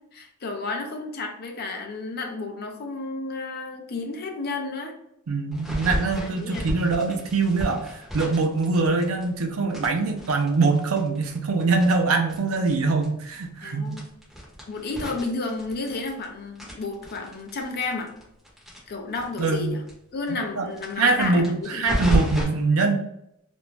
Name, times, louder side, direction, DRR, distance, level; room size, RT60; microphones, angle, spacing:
voice 1, 0.1-5.0 6.1-6.7 13.6-14.0 14.7-18.1 18.9-19.8 20.1-21.8, left 3 dB, 45° left, 4 dB, 0.5 m, -32 dB
voice 2, 5.3-7.9 8.1-13.9 19.4-19.7 20.6-20.7 21.0-23.0, right 3 dB, 70° right, 4 dB, 0.5 m, -23 dB
sound 1, 5.5-9.4 9.7-12.7 13.0-13.1 13.4-13.5 13.9-16.2 16.5-19.6 19.9-20.0 20.2-20.3 20.7-22.4, equal, ahead, 0.9 m, -31 dB
2.5 x 2.1 x 3.0 m, 0.78 s
head